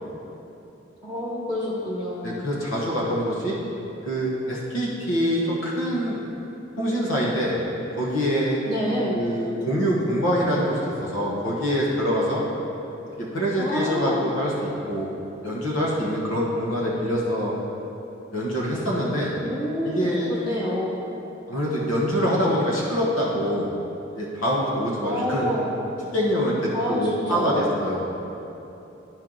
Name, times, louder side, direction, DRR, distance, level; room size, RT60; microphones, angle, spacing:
voice 1, 1.0-2.5 8.6-9.2 13.6-14.2 19.3-21.0 25.0-25.7 26.7-27.7, left 1 dB, 20° left, -6 dB, 1.6 m, -28 dB
voice 2, 2.2-3.6 4.0-6.2 6.8-7.6 8.0-8.6 9.1-12.4 13.2-15.1 15.4-17.5 18.3-19.3 19.8-20.3 21.5-23.7 24.1-25.6 26.1-28.0, equal, 90° left, -4 dB, 1.3 m, -25 dB
12.0 x 4.5 x 3.9 m, 3.0 s
head